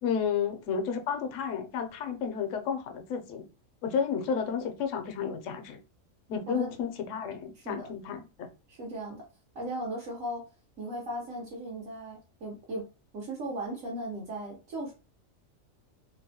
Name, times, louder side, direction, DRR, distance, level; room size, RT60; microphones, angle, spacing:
voice 1, 0.0-3.4 3.8-5.8 6.3-8.5, left 7 dB, 70° left, 0.9 m, -32 dB
voice 2, 7.5-7.9 8.7-9.2 9.5-10.4 10.8-12.8 13.1-14.9, right 1 dB, 75° right, 1.2 m, -37 dB
2.8 x 2.1 x 2.7 m
omnidirectional pair, 1.4 m